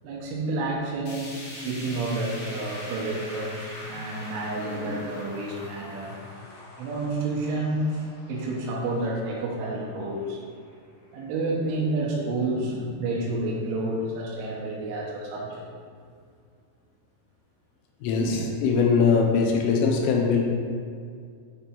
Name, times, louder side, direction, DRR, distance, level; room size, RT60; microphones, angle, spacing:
voice 1, 0.0-6.2 6.8-10.4 11.1-15.6 18.2-18.5, right 2 dB, 80° right, -3 dB, 3.5 m, -30 dB
sound 1, 1.1-11.2 11.6-11.7 12.1-12.2 13.0-13.1, left 1 dB, 65° left, 2.4 m, -43 dB
voice 2, 18.0-20.4, left 5 dB, 90° left, 1 dB, 3.3 m, -21 dB
9.0 x 3.4 x 4.4 m, 2.2 s
omnidirectional pair, 5.9 m